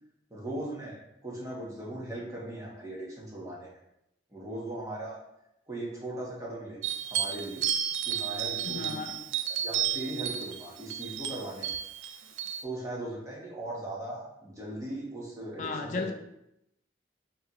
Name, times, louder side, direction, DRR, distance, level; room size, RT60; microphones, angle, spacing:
voice 1, 0.3-3.7 4.3-5.2 5.7-6.8 7.1-7.6 8.0-9.0 9.6-11.8 12.6-16.1, right 1 dB, 15° right, -5 dB, 1.1 m, -38 dB
sound 1, 6.8-12.6, right 10 dB, 85° right, 0.4 m, -32 dB
voice 2, 8.6-9.1 15.6-16.1, left 4 dB, 40° left, 4 dB, 0.3 m, -34 dB
4.9 x 2.8 x 3.0 m, 0.82 s
head